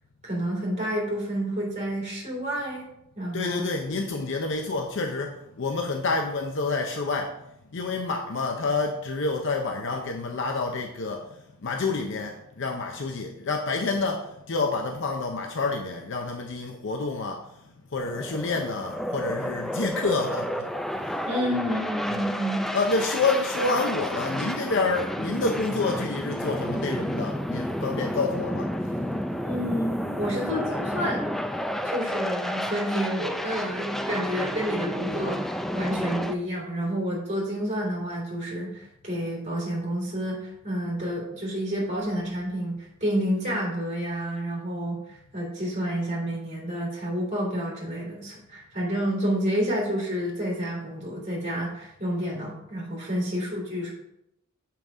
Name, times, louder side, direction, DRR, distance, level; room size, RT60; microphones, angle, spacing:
voice 1, 0.2-2.9 3.1-3.7 21.2-22.7 29.4-31.3 31.8-53.9, equal, 35° right, -4 dB, 2.9 m, -29 dB
voice 2, 3.3-7.4 7.7-17.5 17.9-20.7 21.0-21.3 21.7-21.8 22.1-22.3 22.7-29.0, left 3 dB, 65° left, 3 dB, 0.7 m, -28 dB
sound 1, 18.0-36.3, equal, ahead, 0.3 m, -31 dB
7.1 x 5.8 x 3.6 m, 0.80 s
head